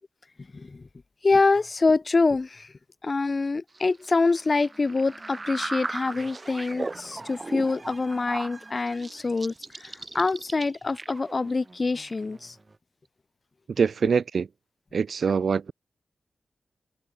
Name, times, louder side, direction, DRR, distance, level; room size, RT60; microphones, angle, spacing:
voice 1, 0.5-0.8 1.2-2.7 3.0-12.5, left 3 dB, 35° left, 0.5 m, -25 dB
sound 1, 3.7-12.8, right 3 dB, 25° right, 2.4 m, -38 dB
voice 2, 13.7-14.5 14.9-15.7, right 6 dB, 60° right, 0.6 m, -24 dB
wide cardioid pair, 125°, 0 cm